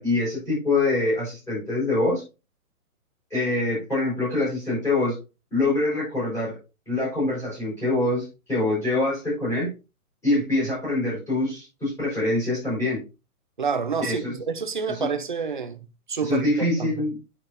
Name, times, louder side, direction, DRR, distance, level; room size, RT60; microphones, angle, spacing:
voice 1, 0.0-2.2 3.3-5.2 5.5-6.6 6.9-9.7 10.2-13.0 14.0-14.4 14.9-15.1 16.2-17.2, left 2 dB, 5° left, 4.4 m, -25 dB
voice 2, 13.6-15.8 16.1-16.9, right 5 dB, 35° right, 0.6 m, -28 dB
8.7 x 6.5 x 2.6 m
hypercardioid pair, 175°, 45 cm